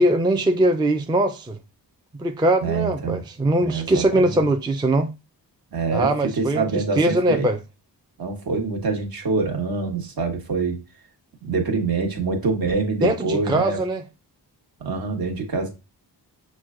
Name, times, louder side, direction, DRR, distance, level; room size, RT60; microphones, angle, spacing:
voice 1, 0.0-1.6 2.2-5.1 5.9-7.6 13.0-14.0, right 1 dB, 10° right, 0.4 m, -21 dB
voice 2, 2.6-3.2 3.6-4.4 5.7-7.5 8.2-10.8 11.4-13.8 14.8-15.7, right 4 dB, 55° right, 1.3 m, -25 dB
6.2 x 2.2 x 3.6 m
wide cardioid pair, 100°, 41 cm